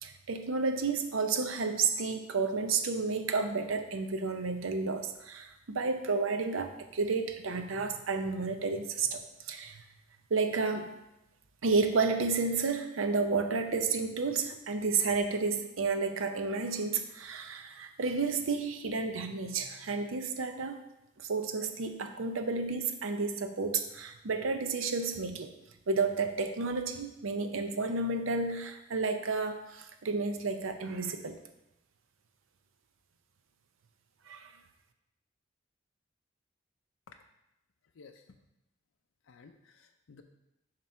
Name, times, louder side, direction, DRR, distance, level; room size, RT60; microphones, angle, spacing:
voice 1, 0.0-9.2 9.5-9.8 10.3-10.9 11.6-20.8 21.2-25.5 25.9-31.4 34.3-34.5, right 4 dB, 85° right, 7 dB, 0.6 m, -31 dB
voice 2, 39.3-40.2, left 5 dB, 80° left, 5 dB, 0.5 m, -55 dB
7.5 x 3.0 x 5.6 m, 0.90 s
head